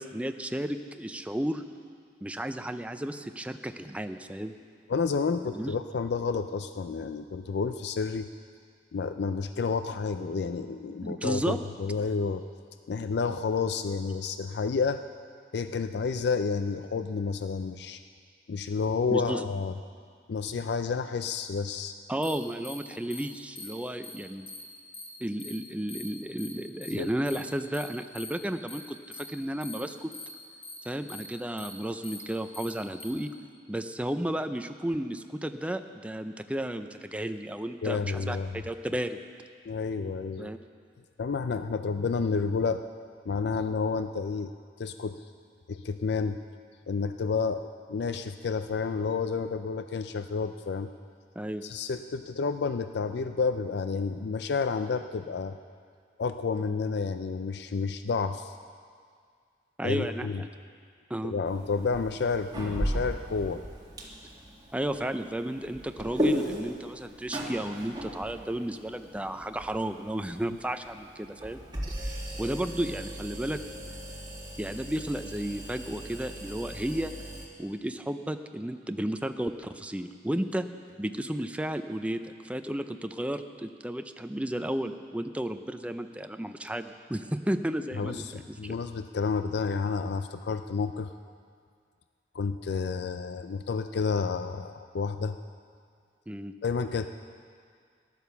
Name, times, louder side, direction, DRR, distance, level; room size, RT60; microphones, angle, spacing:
voice 1, 0.0-1.6 2.2-4.5 5.5-5.7 11.0-11.6 19.1-19.4 22.1-24.5 25.2-30.1 30.9-33.3 33.7-39.2 40.4-40.6 51.4-51.7 59.8-60.5 61.1-61.3 64.7-71.6 72.4-73.6 74.6-77.1 77.6-80.7 81.0-88.7 96.3-96.5, right 1 dB, 5° right, 8 dB, 0.5 m, -33 dB
voice 2, 4.9-8.3 8.9-12.4 12.9-15.0 15.5-18.0 18.5-19.8 20.3-21.9 26.9-27.1 37.8-38.6 39.7-40.5 41.2-42.8 43.3-44.5 44.8-45.2 45.7-46.4 46.9-50.9 51.6-55.6 56.2-58.6 59.8-60.4 61.2-63.6 88.0-88.3 88.6-91.1 92.3-95.4 96.6-97.1, left 5 dB, 65° left, 9 dB, 0.4 m, -30 dB
sound 1, 22.2-22.3 22.6-22.7 23.1-23.2 23.5-23.7 24.0-24.1 24.5-24.6 24.9-25.0 25.4-25.5 25.9-26.0 26.4-26.5 26.8-26.9 27.2-27.4 27.7-27.8 28.1-28.3 28.7-28.8 29.1-29.2 29.6-29.8 30.1-30.2 30.6-30.7 31.1-31.2 31.6-31.7 32.0-32.2 32.5-32.6 33.0-33.1, left 3 dB, 30° left, 4.9 m, -42 dB
sound 2, 61.5-77.5, equal, 25° right, 2.0 m, -37 dB
14.0 x 11.0 x 7.0 m, 2.1 s
head